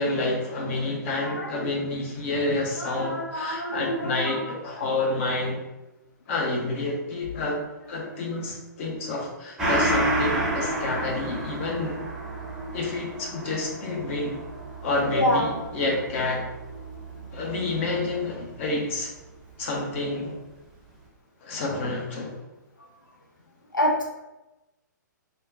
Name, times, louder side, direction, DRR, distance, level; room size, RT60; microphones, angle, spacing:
voice 1, 0.0-5.6 6.3-7.6 7.9-12.0 12.7-14.4 14.8-16.4 17.3-19.1 19.6-20.4 21.4-22.4, left 2 dB, 40° left, -1 dB, 0.8 m, -29 dB
voice 2, 1.2-1.7 2.8-4.4 10.6-10.8 14.0-14.1 15.1-15.6 22.8-22.9 23.7-24.0, equal, 90° left, 1 dB, 0.4 m, -27 dB
Gong, 9.6-18.5 18.9-19.0, right 1 dB, 5° right, 0.8 m, -31 dB
3.4 x 2.3 x 2.6 m, 1.0 s
figure-of-eight pair, 120°, 10 cm